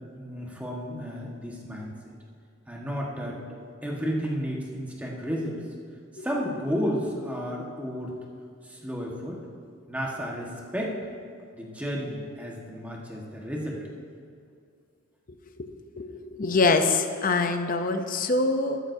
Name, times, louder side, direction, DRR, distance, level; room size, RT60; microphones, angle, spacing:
voice 1, 0.1-1.9 2.7-5.6 6.1-8.1 8.6-9.4 9.9-11.0 11.5-13.8, equal, 5° right, -3 dB, 1.4 m, -32 dB
voice 2, 16.0-18.8, left 3 dB, 40° left, 7 dB, 0.6 m, -24 dB
14.0 x 12.5 x 2.7 m, 2.4 s
head